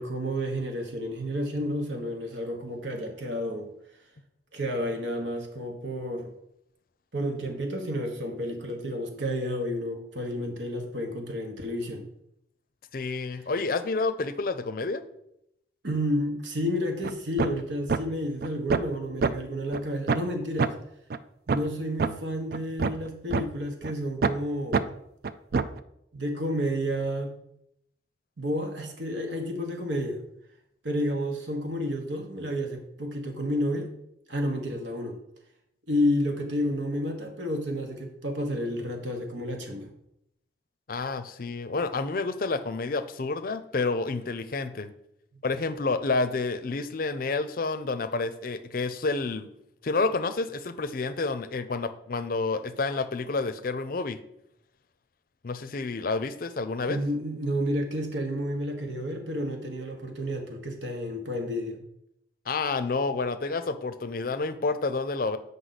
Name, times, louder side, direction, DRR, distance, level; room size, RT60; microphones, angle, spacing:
voice 1, 0.0-3.7 4.5-6.3 7.1-12.1 13.1-13.3 15.8-20.8 21.5-24.9 26.1-27.3 28.4-30.2 30.8-33.9 34.3-35.2 35.9-39.9 56.9-61.8, equal, 80° right, 4 dB, 1.3 m, -31 dB
voice 2, 12.9-15.0 40.9-44.9 45.4-49.5 49.8-54.2 55.4-57.0 62.5-65.4, left 3 dB, 50° left, 12 dB, 0.5 m, -29 dB
sound 1, 17.0-17.1 17.4-17.6 17.9-18.0 18.4-19.0 19.2-19.3 19.7-19.8 20.1-20.3 20.6-20.7 21.1-21.2 21.5-21.7 22.0-22.1 22.5-23.4 23.8-23.9 24.2-24.4 24.7-24.8 25.2-25.8, right 5 dB, 55° right, 0.3 m, -25 dB
7.8 x 5.3 x 4.1 m, 0.78 s
head